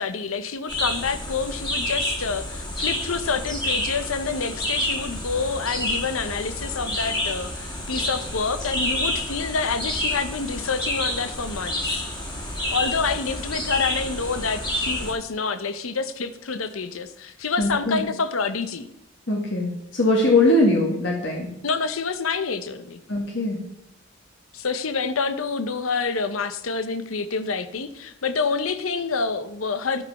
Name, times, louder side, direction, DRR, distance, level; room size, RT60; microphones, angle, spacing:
voice 1, 0.0-12.1 12.7-18.9 21.6-23.0 24.5-30.0, left 4 dB, 90° left, 12 dB, 0.8 m, -27 dB
sound 1, 0.7-15.1, left 1 dB, 20° left, 2.1 m, -29 dB
voice 2, 17.6-18.0 19.3-21.5 23.1-23.6, left 2 dB, 60° left, 0 dB, 1.6 m, -21 dB
11.5 x 5.3 x 5.8 m, 0.81 s
head